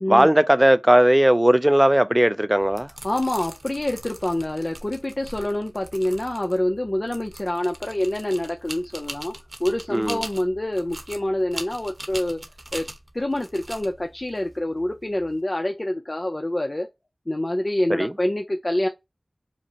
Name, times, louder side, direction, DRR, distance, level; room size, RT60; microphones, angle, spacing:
voice 1, 0.1-2.9 9.9-10.2 17.9-18.1, right 1 dB, 15° right, 0.4 m, -17 dB
sound 1, 2.6-15.4, right 1 dB, 45° right, 0.9 m, -41 dB
voice 2, 3.0-9.3 9.6-12.4 12.7-12.9 13.1-16.9 17.3-18.9, left 1 dB, 35° left, 0.5 m, -26 dB
5.1 x 2.0 x 2.7 m
wide cardioid pair, 50°, 0 cm